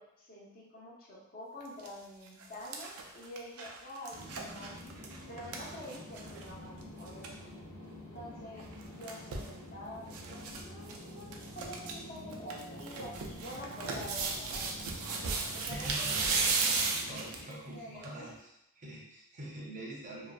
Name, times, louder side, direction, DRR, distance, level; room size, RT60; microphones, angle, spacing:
voice 1, 0.0-4.7 5.3-7.5 8.1-14.8 15.5-16.3 16.6-17.0 17.4-18.3 20.1-20.2, equal, 45° left, -5 dB, 0.6 m, -47 dB
sound 1, 1.6-1.9 2.3-6.5 6.8-6.9 7.1-7.3 8.6-9.5 10.1-10.6 10.9-11.0 11.3-11.9 12.3-17.5 18.0-18.1, right 4 dB, 90° right, 0.4 m, -35 dB
sound 2, 4.1-17.4, left 1 dB, 30° left, 1.0 m, -48 dB
voice 2, 15.7-16.3 17.0-18.5 18.8-20.3, right 1 dB, 35° right, -4 dB, 0.5 m, -44 dB
2.5 x 2.1 x 2.3 m, 0.81 s
head